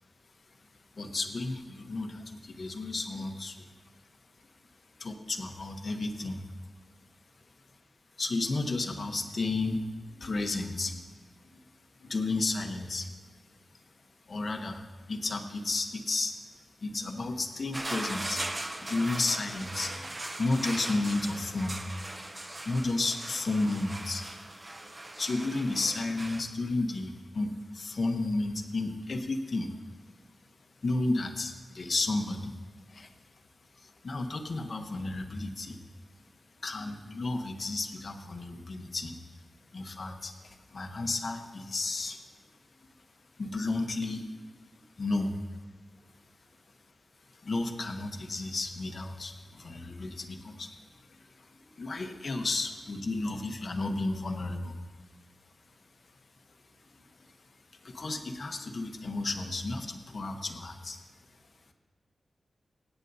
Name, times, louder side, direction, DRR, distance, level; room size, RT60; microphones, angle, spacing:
voice 1, 1.0-3.7 5.0-6.4 8.2-9.8 10.2-11.0 11.5-11.6 12.0-13.1 14.3-14.8 15.1-16.3 16.8-21.8 22.6-24.3 25.2-29.7 30.8-32.5 32.9-33.1 33.8-35.8 36.6-39.1 39.7-42.2 43.4-44.4 45.0-45.3 47.4-50.7 51.1-54.8 57.8-61.0, left 2 dB, 40° left, 5 dB, 1.0 m, -32 dB
sound 1, 17.7-26.4, right 1 dB, 20° right, 0.7 m, -39 dB
25.0 x 8.9 x 2.7 m, 1.3 s
wide cardioid pair, 165°, 0 cm